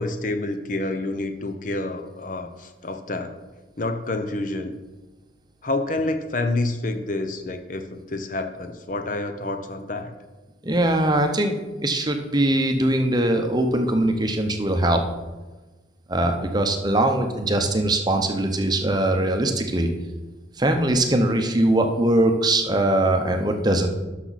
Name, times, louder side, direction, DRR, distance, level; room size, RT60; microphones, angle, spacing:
voice 1, 0.0-3.4 3.8-4.8 5.6-10.1, left 2 dB, 45° left, 7 dB, 0.7 m, -28 dB
voice 2, 10.6-11.5 11.8-15.0 16.1-19.9 20.6-23.9, right 1 dB, 20° right, 5 dB, 0.8 m, -21 dB
12.0 x 6.0 x 4.1 m, 1.2 s
head